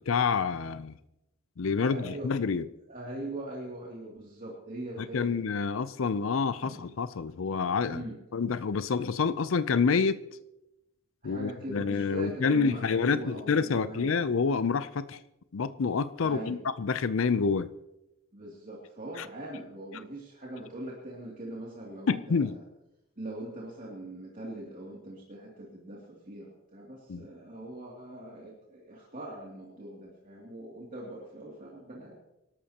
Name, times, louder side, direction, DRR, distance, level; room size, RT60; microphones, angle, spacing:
voice 1, 0.1-0.9 1.6-2.6 5.0-8.0 8.3-10.2 11.2-15.2 15.5-17.7 19.2-19.3 22.1-22.6 27.1-27.2, left 5 dB, 70° left, 14 dB, 0.5 m, -28 dB
voice 2, 1.8-2.3 2.9-5.4 6.3-6.9 7.9-8.2 11.2-14.2 16.2-16.6 18.3-22.6 23.2-32.2, right 1 dB, 40° right, -4 dB, 2.6 m, -41 dB
25.5 x 12.5 x 2.9 m, 0.91 s
head